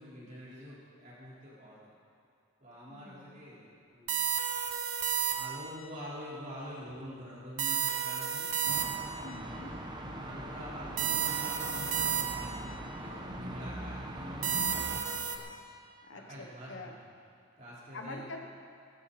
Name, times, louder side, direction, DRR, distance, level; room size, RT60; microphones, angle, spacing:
voice 1, 0.0-1.9 2.6-4.2 5.3-8.5 10.2-15.5 16.1-17.0 17.6-18.4, equal, 35° right, -8 dB, 4.3 m, -46 dB
voice 2, 2.9-3.4 9.2-9.8 16.1-17.0 17.9-18.4, left 2 dB, 60° left, 4 dB, 1.1 m, -45 dB
sound 1, 4.1-5.7 7.6-9.3 11.0-12.6 14.4-15.4, right 8 dB, 85° right, 1.2 m, -32 dB
sound 2, 8.6-15.0, right 1 dB, 20° right, 0.9 m, -41 dB
18.5 x 14.0 x 4.2 m, 2.4 s
head